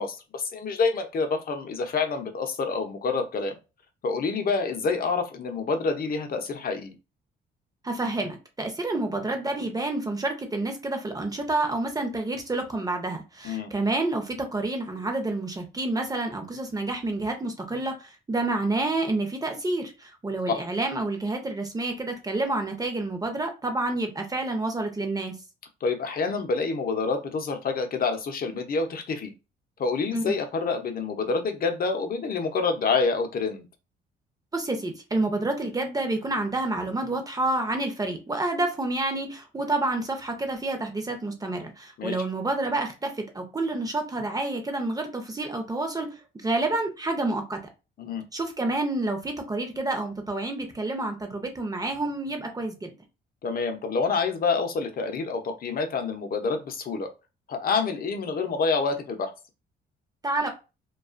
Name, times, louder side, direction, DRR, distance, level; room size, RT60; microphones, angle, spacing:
voice 1, 0.0-3.6 4.0-6.9 13.4-13.7 20.5-20.6 25.8-29.3 29.8-33.6 42.0-42.1 48.0-48.3 53.4-57.1 57.5-59.3, left 4 dB, 50° left, 0.6 m, -27 dB
voice 2, 7.8-25.3 30.1-30.4 34.5-47.6 48.3-52.9 60.2-60.5, right 2 dB, 20° right, 0.6 m, -29 dB
2.3 x 2.3 x 2.4 m
cardioid pair, 90°, 20 cm